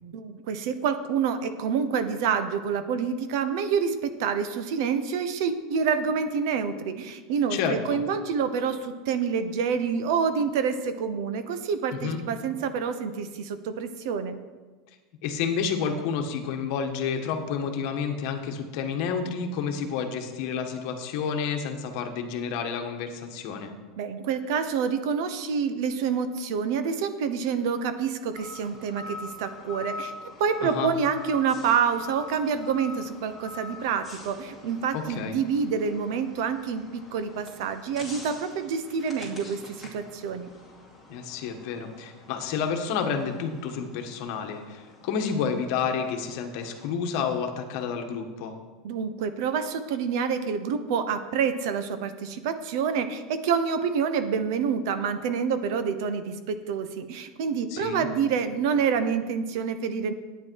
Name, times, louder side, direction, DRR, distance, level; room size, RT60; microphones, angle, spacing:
voice 1, 0.0-14.4 24.0-30.1 30.4-40.5 48.8-60.1, right 6 dB, 60° right, 10 dB, 0.9 m, -27 dB
voice 2, 7.5-8.0 12.0-12.2 15.2-23.7 30.6-30.9 34.9-35.4 41.1-48.5 57.7-58.1, left 6 dB, 55° left, 5 dB, 1.4 m, -30 dB
sound 1, 28.3-46.9, left 2 dB, 5° right, 2.6 m, -45 dB
11.0 x 9.2 x 4.7 m, 1.3 s
supercardioid pair, 160°, 2 cm